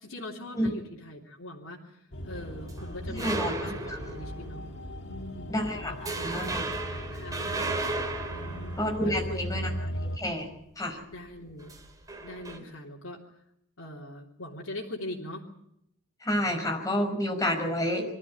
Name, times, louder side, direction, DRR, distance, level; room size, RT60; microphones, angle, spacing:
voice 1, 0.0-4.6 5.0-6.4 6.9-7.8 8.3-9.5 9.8-10.0 11.1-11.7 12.2-13.2 13.8-15.4, left 1 dB, 85° left, -3 dB, 3.3 m, -42 dB
sound 1, 2.1-10.2, equal, 60° left, 1.9 m, -38 dB
sound 2, 2.3-4.6 5.0-5.2 5.6-5.7 6.0-9.5 11.6-12.6, right 3 dB, 20° right, 3.3 m, -35 dB
voice 2, 3.1-4.0 5.5-6.6 8.4-9.7 10.2-10.5 10.8-11.0 16.2-18.1, equal, 15° left, 2 dB, 5.3 m, -30 dB
24.5 x 13.5 x 9.8 m, 0.76 s
head